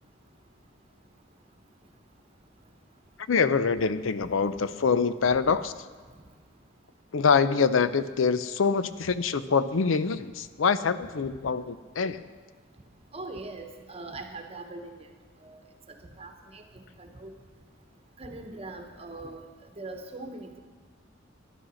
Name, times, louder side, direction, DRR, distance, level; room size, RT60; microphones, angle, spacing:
voice 1, 3.3-5.7 7.1-12.2, left 5 dB, 75° left, 13 dB, 0.5 m, -25 dB
voice 2, 13.1-15.1 15.4-15.6 16.2-17.3 18.2-19.4 19.7-20.6, right 2 dB, 30° right, 5 dB, 1.1 m, -41 dB
11.5 x 11.0 x 6.2 m, 1.5 s
head